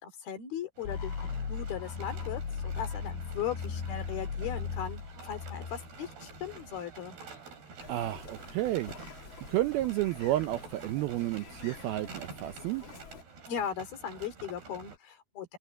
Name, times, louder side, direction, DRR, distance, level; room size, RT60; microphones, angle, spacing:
voice 1, 0.0-7.2 13.5-15.6, left 8 dB, 60° left, 4.4 m, -38 dB
sound 1, 0.8-15.0, right 4 dB, 65° right, 7.7 m, -49 dB
sound 2, 0.9-6.8, left 6 dB, 80° left, 6.8 m, -37 dB
sound 3, 7.8-13.2, left 5 dB, 40° left, 2.0 m, -49 dB
voice 2, 7.9-8.9 9.5-12.8, right 15 dB, 80° right, 2.3 m, -31 dB
omnidirectional pair, 5.1 m